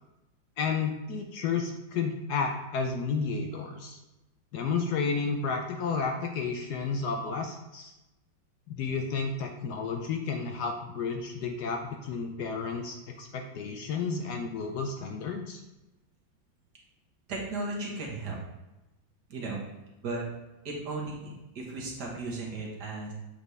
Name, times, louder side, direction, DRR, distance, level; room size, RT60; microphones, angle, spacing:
voice 1, 0.6-4.0 4.5-7.9 8.7-15.6, left 5 dB, 70° left, 4 dB, 1.0 m, -32 dB
voice 2, 17.3-18.4 19.3-19.6 20.0-20.3 20.7-23.1, right 3 dB, 60° right, -2 dB, 1.8 m, -35 dB
8.0 x 4.1 x 3.2 m, 1.0 s
omnidirectional pair, 2.0 m